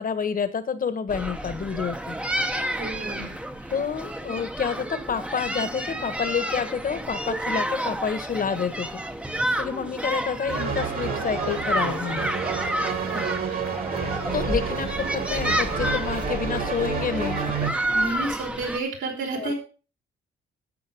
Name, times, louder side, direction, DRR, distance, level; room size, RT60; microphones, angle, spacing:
voice 1, 0.0-2.2 3.7-8.9 9.6-12.3 14.3-17.4 19.3-19.5, left 6 dB, 45° left, 11 dB, 1.6 m, -28 dB
sound 1, 1.1-18.8, right 1 dB, 5° right, 1.1 m, -30 dB
voice 2, 2.8-3.7 13.1-13.3 17.9-19.5, right 3 dB, 75° right, 0 dB, 5.1 m, -31 dB
sound 2, 10.5-17.7, right 5 dB, 45° right, 2.4 m, -29 dB
10.5 x 7.8 x 5.4 m, 0.35 s
cardioid pair, 90°, 20 cm